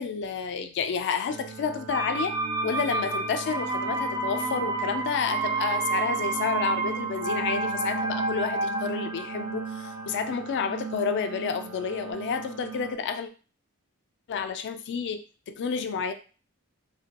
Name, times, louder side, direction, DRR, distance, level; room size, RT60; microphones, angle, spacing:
voice 1, 0.0-2.3 2.6-13.3 14.3-16.1, left 6 dB, 50° left, 0.3 m, -30 dB
sound 1, 1.3-12.9, right 6 dB, 75° right, 0.7 m, -39 dB
sound 2, 1.9-11.6 11.9-12.0, right 3 dB, 20° right, 0.4 m, -30 dB
2.8 x 2.1 x 2.8 m
head